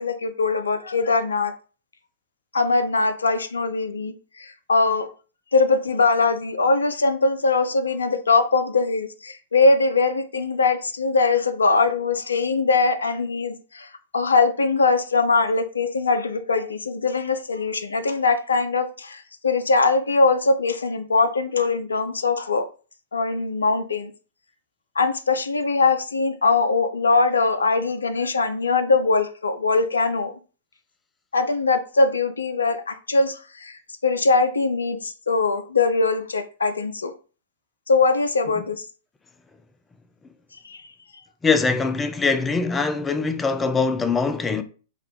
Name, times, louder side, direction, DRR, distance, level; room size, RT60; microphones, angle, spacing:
voice 1, 0.0-1.5 2.5-5.1 5.5-22.6 23.1-24.1 25.0-30.3 31.3-37.1 37.9-38.8 40.6-40.9, left 3 dB, 80° left, 0.4 m, -21 dB
voice 2, 41.4-44.6, left 4 dB, 15° left, 0.4 m, -22 dB
3.7 x 2.3 x 3.1 m
figure-of-eight pair, 100°, 0 cm